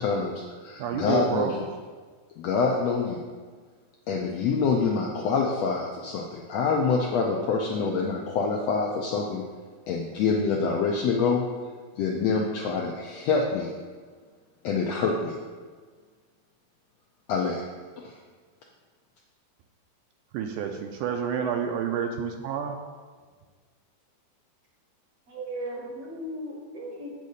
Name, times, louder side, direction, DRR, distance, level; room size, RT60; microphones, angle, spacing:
voice 1, 0.0-1.6 2.4-3.2 4.1-9.4 9.9-11.4 12.0-13.7 14.6-15.4 17.3-17.6 18.0-18.2, left 4 dB, 80° left, -1 dB, 1.5 m, -26 dB
voice 2, 0.8-1.5 20.3-22.8, right 7 dB, 80° right, 4 dB, 2.0 m, -29 dB
voice 3, 25.3-27.1, right 1 dB, 65° right, -2 dB, 1.6 m, -36 dB
8.4 x 4.1 x 6.5 m, 1.5 s
omnidirectional pair, 3.7 m